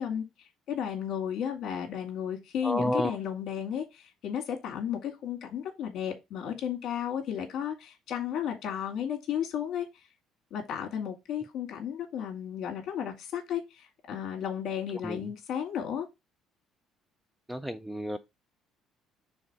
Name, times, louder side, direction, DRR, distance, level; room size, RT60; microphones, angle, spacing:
voice 1, 0.0-9.9 10.5-16.1, left 9 dB, 50° left, 2.1 m, -34 dB
voice 2, 2.6-3.2 15.0-15.2 17.5-18.2, equal, 5° right, 0.3 m, -30 dB
6.4 x 3.5 x 4.7 m
cardioid pair, 175°, 0 cm